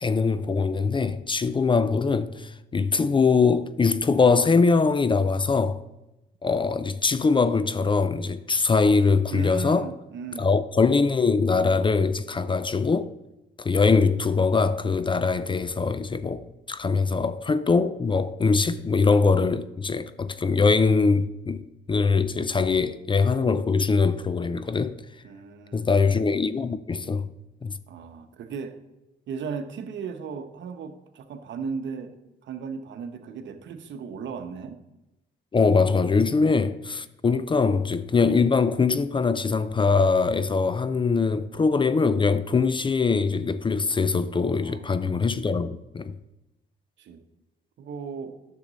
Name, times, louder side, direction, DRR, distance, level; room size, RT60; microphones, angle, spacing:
voice 1, 0.0-5.8 6.4-9.9 10.4-13.1 13.6-25.0 25.7-27.3 27.6-27.7 35.5-46.2, left 4 dB, 25° left, 0.4 m, -22 dB
voice 2, 9.3-10.5 25.2-25.9 27.9-28.8 29.3-34.8 36.3-36.7 44.6-44.9 47.0-47.2 47.8-48.4, right 6 dB, 65° right, 0.9 m, -36 dB
10.0 x 6.6 x 4.0 m
cardioid pair, 90°, 20 cm